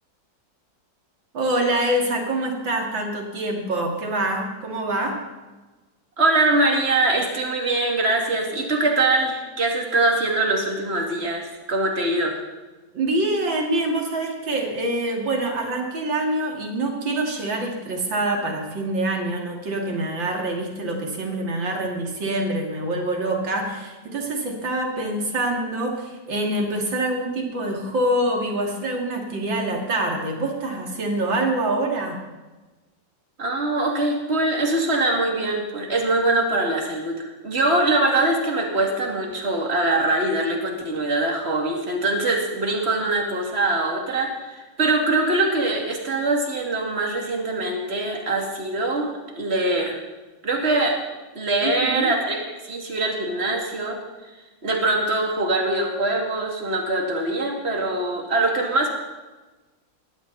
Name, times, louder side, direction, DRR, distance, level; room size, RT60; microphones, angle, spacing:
voice 1, 1.3-5.2 12.9-32.2 51.6-52.1, right 1 dB, 90° right, 1 dB, 3.4 m, -25 dB
voice 2, 6.2-12.4 33.4-50.0 50.4-51.0 51.3-52.4 52.6-54.0 54.6-58.9, right 2 dB, 35° right, 1 dB, 2.8 m, -23 dB
21.0 x 15.0 x 4.1 m, 1.2 s
omnidirectional pair, 2.0 m